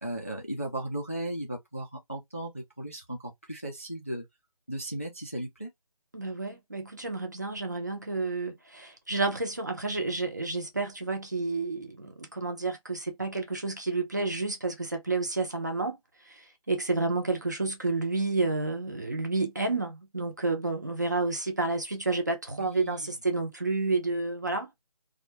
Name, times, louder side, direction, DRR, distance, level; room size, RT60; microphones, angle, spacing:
voice 1, 0.0-4.2 4.7-5.7 22.5-23.1, right 1 dB, 20° left, 0.4 m, -36 dB
voice 2, 6.1-16.0 16.2-24.8, right 3 dB, 30° right, 0.6 m, -30 dB
2.6 x 2.2 x 2.8 m
figure-of-eight pair, 175°, 20 cm